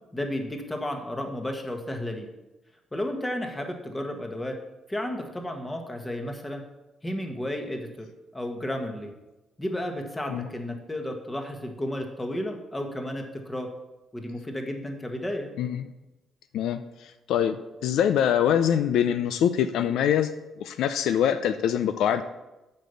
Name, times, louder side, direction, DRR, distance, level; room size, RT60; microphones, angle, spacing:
voice 1, 0.1-2.3 2.9-4.5 4.9-6.6 7.0-8.1 8.3-9.1 9.6-13.7 14.1-15.5, left 1 dB, 15° left, 3 dB, 1.5 m, -32 dB
voice 2, 16.5-20.3 20.6-22.2, left 9 dB, 80° left, 10 dB, 0.5 m, -24 dB
7.5 x 5.5 x 7.0 m, 1.0 s
cardioid pair, 90°, 0 cm